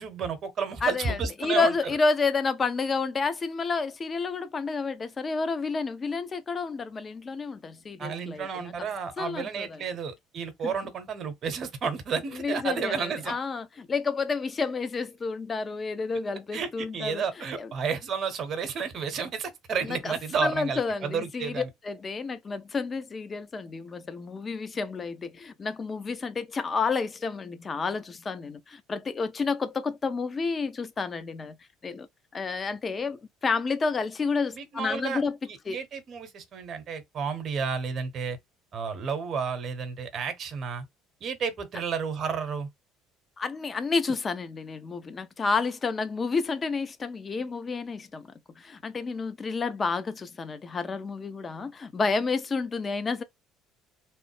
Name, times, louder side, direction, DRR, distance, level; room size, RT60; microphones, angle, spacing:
voice 1, 0.0-1.8 8.0-13.4 16.5-21.7 34.5-35.2 35.5-38.4 38.7-40.9 41.2-42.7, right 6 dB, 40° right, 0.8 m, -31 dB
voice 2, 0.8-8.7 9.2-9.8 10.6-10.7 12.3-17.2 17.6-17.7 19.8-20.1 20.4-31.6 31.8-32.1 32.3-35.4 35.7-35.8 43.4-53.2, left 4 dB, 30° left, 0.5 m, -30 dB
3.1 x 2.0 x 3.1 m
figure-of-eight pair, 60°, 0 cm